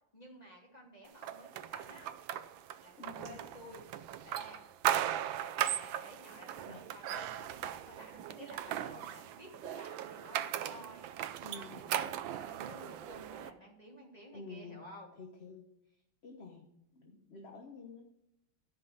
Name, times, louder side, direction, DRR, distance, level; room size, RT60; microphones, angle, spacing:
voice 1, 0.1-2.1 2.8-4.7 5.7-11.1 11.5-15.1, equal, 20° left, -1 dB, 2.7 m, -53 dB
sound 1, 1.2-13.5, right 11 dB, 85° right, 1.4 m, -38 dB
voice 2, 3.0-3.4 6.7-6.8 7.4-7.6 11.4-11.8 14.3-14.8 15.2-15.7 16.2-16.7 16.9-18.0, left 4 dB, 40° left, 2 dB, 1.2 m, -49 dB
13.0 x 5.6 x 6.5 m, 0.83 s
omnidirectional pair, 2.1 m